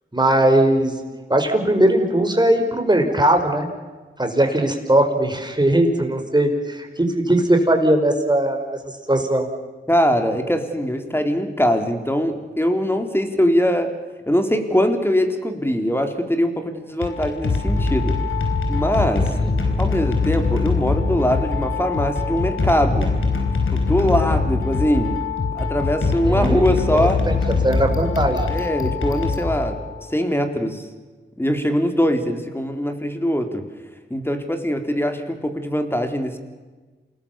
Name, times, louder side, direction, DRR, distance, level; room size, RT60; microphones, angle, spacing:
voice 1, 0.1-1.0 1.3-3.7 4.2-9.5 19.2-19.5 26.2-26.8 27.3-27.4 27.6-28.5, right 1 dB, 20° right, 4 dB, 5.2 m, -19 dB
voice 2, 9.9-13.9 14.3-18.2 18.7-19.3 19.8-23.1 23.7-25.2 25.5-27.2 28.5-29.8 30.1-30.9 31.4-33.6 34.1-36.4, equal, 10° left, 6 dB, 3.9 m, -22 dB
sound 1, 16.9-30.1, left 4 dB, 85° left, 4.5 m, -22 dB
28.5 x 19.5 x 7.2 m, 1.3 s
cardioid pair, 45°, 20 cm